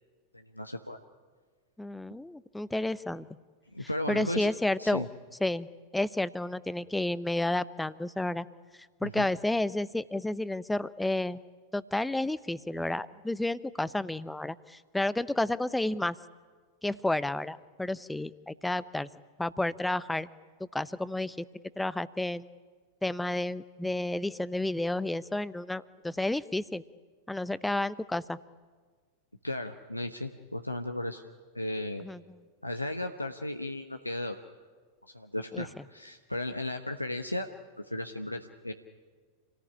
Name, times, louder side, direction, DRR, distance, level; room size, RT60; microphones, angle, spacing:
voice 1, 0.3-1.0 3.7-4.5 4.8-5.1 9.0-9.3 29.4-31.2 31.5-32.0 32.6-34.4 35.1-37.5 37.8-38.7, left 1 dB, 85° left, 5 dB, 1.1 m, -35 dB
voice 2, 1.8-3.3 3.8-5.1 5.4-8.5 9.0-11.4 11.7-16.2 16.8-19.1 19.4-20.3 20.7-21.4 21.8-22.4 23.0-26.8 27.3-28.4 32.0-32.2 35.5-35.7, left 1 dB, 5° left, 17 dB, 0.8 m, -31 dB
28.0 x 18.5 x 10.0 m, 1.5 s
figure-of-eight pair, 90°, 0 cm